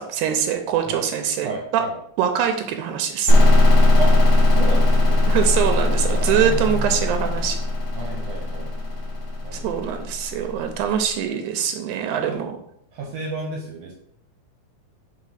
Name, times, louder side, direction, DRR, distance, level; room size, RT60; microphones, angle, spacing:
voice 1, 0.0-1.8 2.2-3.3 5.3-7.6 9.5-12.6, right 8 dB, 85° right, 6 dB, 2.0 m, -23 dB
voice 2, 1.4-2.0 4.0-4.1 4.5-5.2 6.0-7.0 7.9-8.9 9.4-9.8 12.2-12.4 12.9-13.9, right 3 dB, 70° right, 0 dB, 1.8 m, -32 dB
sound 1, 3.3-10.8, left 2 dB, 90° left, 0.9 m, -18 dB
4.9 x 3.9 x 5.5 m, 0.72 s
omnidirectional pair, 3.4 m